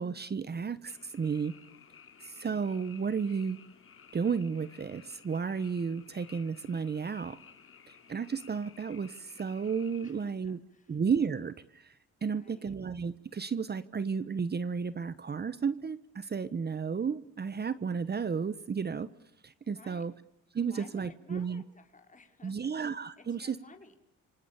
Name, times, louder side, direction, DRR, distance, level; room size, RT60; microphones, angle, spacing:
voice 1, 0.0-1.5 2.2-3.6 4.1-7.4 7.9-10.6 10.9-12.0 12.2-19.1 19.4-20.1 20.5-21.6 22.4-23.6, right 6 dB, 35° right, 15 dB, 1.1 m, -33 dB
Frog, 0.9-10.3, left 6 dB, 45° left, 3.2 m, -56 dB
voice 2, 10.0-11.0 12.2-12.7 19.7-20.1 20.7-22.5 23.2-24.0, left 4 dB, 25° left, 5 dB, 4.2 m, -56 dB
27.5 x 25.5 x 7.1 m, 0.81 s
cardioid pair, 90°, 30 cm